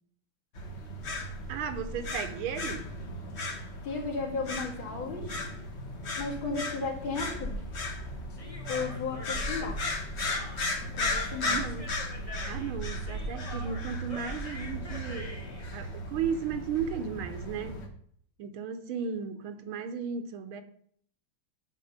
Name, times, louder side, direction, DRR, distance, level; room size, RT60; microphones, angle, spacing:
sound 1, 0.5-17.9, left 1 dB, 40° left, 1.2 m, -36 dB
voice 1, 1.5-2.9 11.5-11.9 12.4-15.3 15.7-17.8 18.4-20.6, right 7 dB, 80° right, 1.7 m, -35 dB
voice 2, 3.8-5.3 6.2-7.6 8.7-9.8 10.8-11.6, left 4 dB, 70° left, 2.6 m, -34 dB
Human voice, 8.3-15.7, left 1 dB, 25° left, 0.9 m, -46 dB
8.3 x 4.7 x 6.5 m
omnidirectional pair, 2.3 m